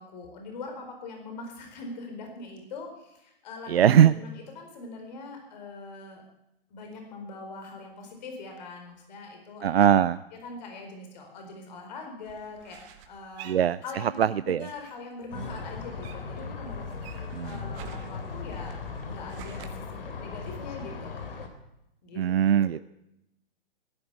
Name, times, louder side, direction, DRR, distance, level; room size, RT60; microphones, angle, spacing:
voice 1, 0.0-6.2 6.7-9.7 10.4-13.5 13.8-21.3 22.0-22.2 22.5-22.8, left 3 dB, 45° left, 3 dB, 4.5 m, -42 dB
voice 2, 3.7-4.1 9.6-10.2 13.4-14.6 17.3-17.7 22.2-22.8, right 9 dB, 80° right, 15 dB, 0.6 m, -21 dB
sound 1, 12.2-14.3 14.6-16.4 16.7-19.7, right 10 dB, 30° right, 1.6 m, -48 dB
sound 2, 15.3-21.5, left 5 dB, 65° left, 3.2 m, -38 dB
15.5 x 10.5 x 8.2 m, 0.84 s
hypercardioid pair, 140°, 30 cm